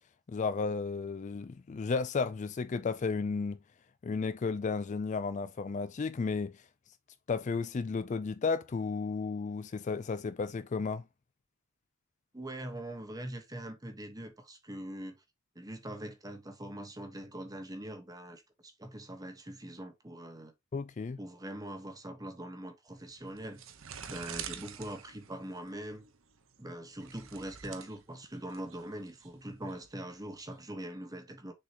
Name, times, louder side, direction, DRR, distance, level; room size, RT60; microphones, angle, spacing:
voice 1, 0.3-3.6 4.0-6.6 7.3-11.0 20.7-21.2, left 4 dB, 35° left, 0.3 m, -33 dB
voice 2, 12.3-15.2 15.5-20.5 21.2-23.6 24.1-26.0 26.6-31.5, right 1 dB, 15° right, 1.2 m, -42 dB
sound 1, 22.9-30.5, right 8 dB, 65° right, 0.9 m, -47 dB
6.6 x 4.9 x 2.9 m
head